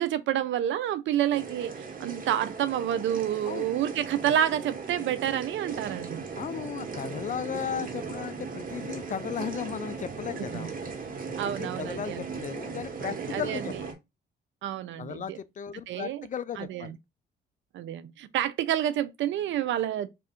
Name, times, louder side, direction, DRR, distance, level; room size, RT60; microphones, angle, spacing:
voice 1, 0.0-6.2 10.4-10.7 11.4-12.5 13.0-13.8 14.6-15.4 15.9-16.3 16.6-17.0 17.7-20.1, right 11 dB, 75° right, 0.5 m, -29 dB
sound 1, 1.3-13.9, right 5 dB, 45° right, 1.2 m, -38 dB
voice 2, 6.4-10.7 11.4-13.9 15.0-16.9, left 8 dB, 40° left, 0.4 m, -36 dB
3.4 x 2.5 x 4.3 m
cardioid pair, 90°, 20 cm